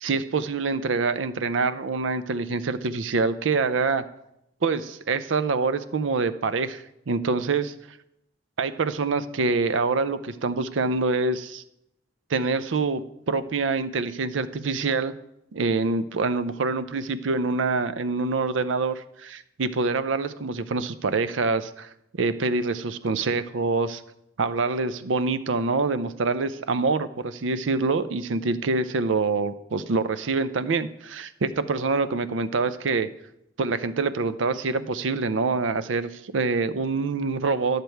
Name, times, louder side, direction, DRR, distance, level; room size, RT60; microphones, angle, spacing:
voice 1, 0.0-4.1 4.6-7.7 8.6-11.6 12.3-15.1 15.5-24.0 24.4-33.1 33.6-37.8, right 4 dB, 85° right, 13 dB, 0.5 m, -25 dB
11.5 x 6.7 x 4.5 m, 0.82 s
head